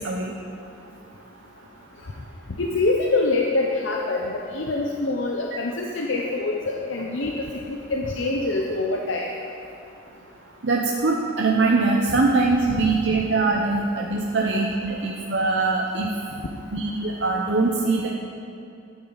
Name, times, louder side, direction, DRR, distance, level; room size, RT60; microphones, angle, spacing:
voice 1, 2.6-9.3 12.1-12.2, left 2 dB, 75° left, 0 dB, 0.7 m, -25 dB
voice 2, 10.6-16.1 16.7-18.1, right 3 dB, 65° right, -1 dB, 0.8 m, -22 dB
13.5 x 8.8 x 4.0 m, 2.6 s
head